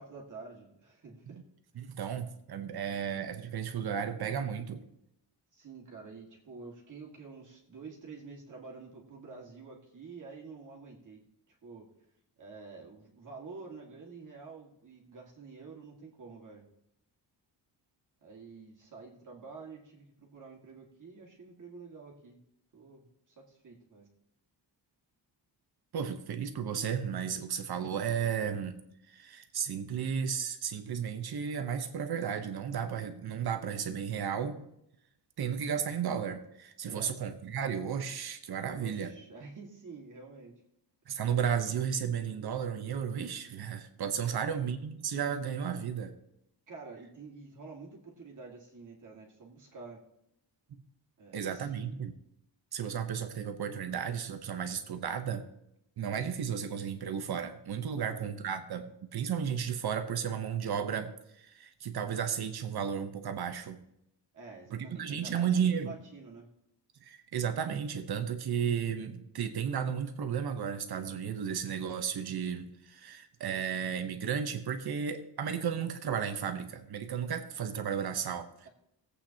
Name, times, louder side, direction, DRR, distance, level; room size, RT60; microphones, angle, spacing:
voice 1, 0.0-1.4 5.5-11.2 11.6-11.9 12.4-16.6 18.2-22.4 22.7-24.1 36.8-37.1 38.7-40.5 44.2-44.6 46.7-50.0 51.2-51.7 53.0-53.2 57.9-58.3 64.3-66.5, right 4 dB, 45° right, -1 dB, 2.0 m, -48 dB
voice 2, 1.8-4.8 25.9-28.8 29.1-34.6 35.4-39.1 41.1-46.1 51.3-52.2 52.7-55.4 56.0-61.1 61.4-63.8 64.7-66.0 67.0-78.7, right 7 dB, 60° right, 7 dB, 1.0 m, -34 dB
18.0 x 8.3 x 2.9 m, 0.81 s
wide cardioid pair, 175°, 43 cm